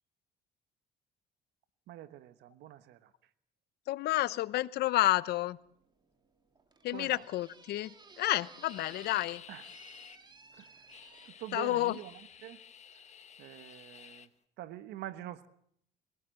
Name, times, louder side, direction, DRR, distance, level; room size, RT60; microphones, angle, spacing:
voice 1, 1.9-3.1 6.9-7.2 9.5-9.7 10.5-12.6 12.9-13.1 13.4-14.3 14.6-15.5, right 13 dB, 80° right, 1.3 m, -46 dB
voice 2, 3.9-5.6 6.8-9.4 11.5-11.9, left 16 dB, 75° left, 0.8 m, -30 dB
sound 1, 5.0-11.3, right 3 dB, 25° right, 2.2 m, -57 dB
sound 2, 8.7-10.2 10.6-14.3, left 8 dB, 40° left, 1.3 m, -53 dB
23.5 x 17.5 x 7.7 m
cardioid pair, 110°, 17 cm